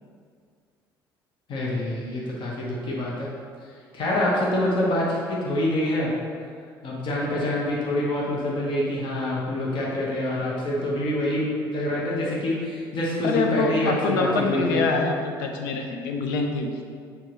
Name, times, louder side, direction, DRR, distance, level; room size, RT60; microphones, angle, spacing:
voice 1, 1.5-3.3 3.9-6.1 6.8-14.8, left 1 dB, 45° left, -5 dB, 1.3 m, -26 dB
voice 2, 13.2-16.8, left 3 dB, 70° left, 3 dB, 0.7 m, -25 dB
7.4 x 5.0 x 3.1 m, 2.1 s
figure-of-eight pair, 55°, 12 cm